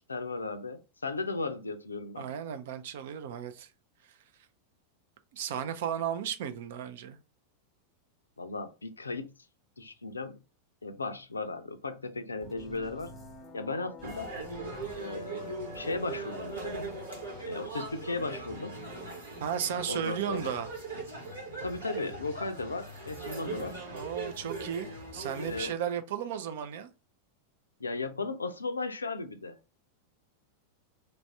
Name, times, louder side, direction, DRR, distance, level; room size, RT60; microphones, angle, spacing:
voice 1, 0.1-2.3 8.4-9.3 9.8-10.4 10.8-13.1 13.5-14.3 15.0-16.8 17.4-18.8 19.9-20.5 21.6-23.8 25.4-25.7 27.8-29.6, left 3 dB, 75° left, 0.4 m, -36 dB
voice 2, 2.1-3.7 4.1-4.2 5.3-7.2 19.4-20.7 23.9-26.9, right 9 dB, 55° right, 0.4 m, -34 dB
sound 1, 12.4-17.4, left 2 dB, 20° left, 0.6 m, -47 dB
sound 2, 14.0-25.7, right 3 dB, 70° right, 1.3 m, -40 dB
3.3 x 2.5 x 3.2 m
figure-of-eight pair, 90°, 0 cm